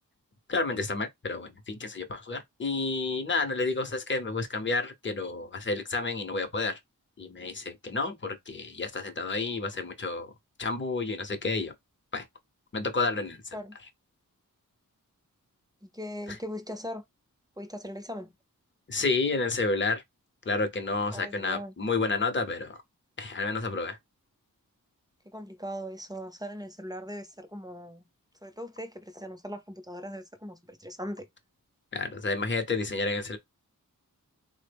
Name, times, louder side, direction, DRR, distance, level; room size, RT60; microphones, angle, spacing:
voice 1, 0.5-6.8 7.2-10.3 10.6-11.7 12.1-12.2 12.7-13.6 18.9-20.0 20.5-22.8 23.2-24.0 31.9-33.4, left 3 dB, 35° left, 0.7 m, -30 dB
voice 2, 15.8-17.0 17.6-18.3 21.1-21.7 25.2-28.1 28.4-31.3, equal, 10° right, 0.5 m, -39 dB
3.7 x 2.1 x 3.3 m
wide cardioid pair, 75°, 34 cm